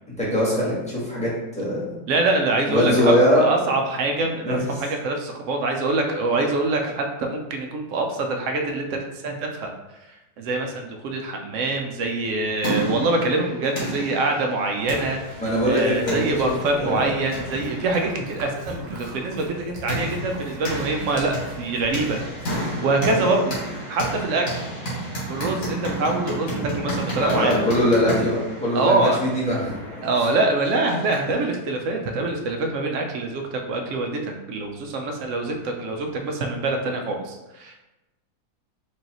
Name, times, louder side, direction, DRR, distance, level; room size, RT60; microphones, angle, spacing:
voice 1, 0.2-2.0 2.7-3.4 4.5-4.6 15.4-16.5 16.8-17.1 23.0-23.2 27.2-29.8 30.2-30.3, equal, 5° left, -8 dB, 1.0 m, -22 dB
voice 2, 2.1-9.7 10.4-15.2 15.6-22.2 22.8-23.6 23.9-24.5 25.3-27.7 28.7-29.2 30.0-37.8, right 2 dB, 75° right, 3 dB, 0.7 m, -24 dB
sound 1, 12.2-31.4, right 1 dB, 75° left, 2.2 m, -32 dB
sound 2, 14.7-22.6, right 1 dB, 50° right, 0.9 m, -40 dB
4.4 x 2.7 x 2.9 m, 0.99 s
omnidirectional pair, 1.8 m